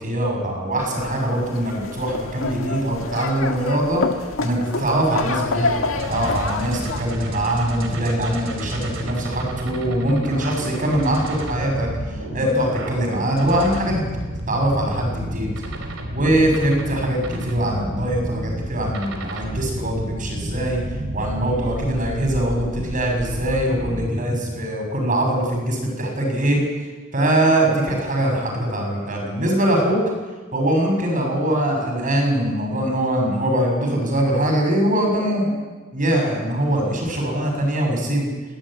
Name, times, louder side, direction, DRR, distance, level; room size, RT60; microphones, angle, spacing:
voice 1, 0.0-4.0 4.4-5.7 6.1-14.0 14.5-15.5 16.1-20.8 21.1-26.6 27.1-30.0 30.5-35.6 35.9-38.3, right 1 dB, 40° right, 2 dB, 6.7 m, -22 dB
sound 1, 0.8-7.0, left 3 dB, 70° left, 1.8 m, -28 dB
sound 2, 5.6-24.0, right 1 dB, 75° right, 4.4 m, -31 dB
22.0 x 16.5 x 9.0 m, 1.3 s
head